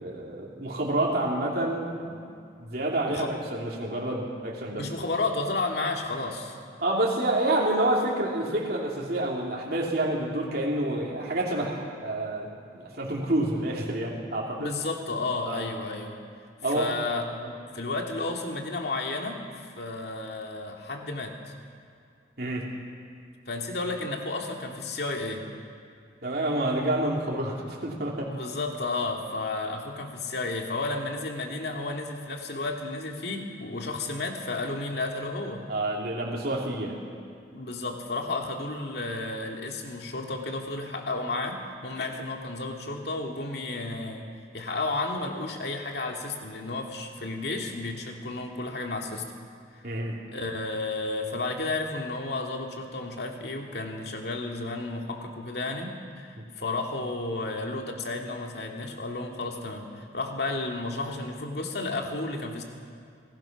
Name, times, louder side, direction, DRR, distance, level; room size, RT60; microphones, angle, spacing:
voice 1, 0.0-2.3 2.6-5.1 6.8-12.5 12.7-14.7 15.5-15.6 16.6-16.9 22.4-22.7 26.2-28.3 35.7-37.0 49.8-50.2, right 1 dB, 55° right, -3 dB, 3.0 m, -28 dB
voice 2, 4.7-6.6 14.6-16.2 16.7-17.2 17.7-21.3 23.5-25.4 28.3-35.6 37.5-44.3 44.5-49.2 50.3-62.6, left 2 dB, 60° left, 1 dB, 2.4 m, -32 dB
26.0 x 18.5 x 6.0 m, 2.4 s
head